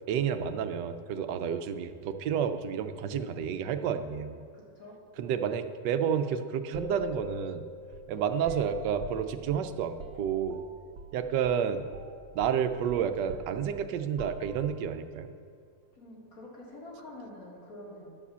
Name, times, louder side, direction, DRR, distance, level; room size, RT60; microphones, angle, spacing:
voice 1, 0.1-4.4 5.2-7.6 8.1-10.6 11.1-11.9 12.3-15.3, right 8 dB, 85° right, 9 dB, 1.3 m, -30 dB
voice 2, 4.5-4.9 8.1-8.2 15.9-18.1, left 1 dB, 55° left, -3 dB, 2.4 m, -47 dB
sound 1, 6.7-11.2 11.4-11.7 11.9-14.9, right 1 dB, 65° right, 1.2 m, -44 dB
10.5 x 4.9 x 6.8 m, 2.3 s
omnidirectional pair, 1.8 m